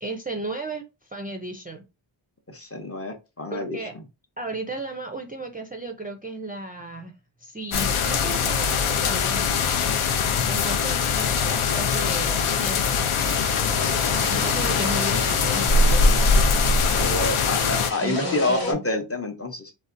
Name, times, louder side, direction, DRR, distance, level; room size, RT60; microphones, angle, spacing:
voice 1, 0.0-1.8 3.5-3.9 4.4-7.1 7.4-9.5 10.5-13.2 14.3-16.0 18.0-18.8, right 2 dB, 20° right, 3 dB, 0.4 m, -34 dB
voice 2, 2.5-4.0 16.9-19.7, left 2 dB, 30° left, 4 dB, 0.6 m, -28 dB
sound 1, 7.7-17.9, left 5 dB, 80° left, 0.6 m, -22 dB
sound 2, 13.1-18.7, left 2 dB, 50° left, 1.0 m, -32 dB
3.8 x 2.2 x 2.5 m, 0.27 s
wide cardioid pair, 110°, 49 cm